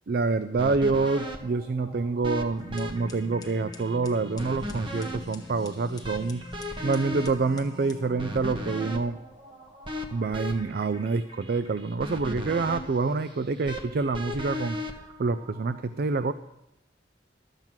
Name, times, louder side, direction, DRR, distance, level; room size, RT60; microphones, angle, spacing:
voice 1, 0.1-9.2 10.1-14.8 15.2-16.3, right 4 dB, 55° right, 12 dB, 0.4 m, -27 dB
sound 1, 0.6-15.8, left 1 dB, 30° right, 1.1 m, -38 dB
sound 2, 2.6-8.9, left 2 dB, 20° left, 1.0 m, -44 dB
12.0 x 7.3 x 6.0 m, 0.85 s
head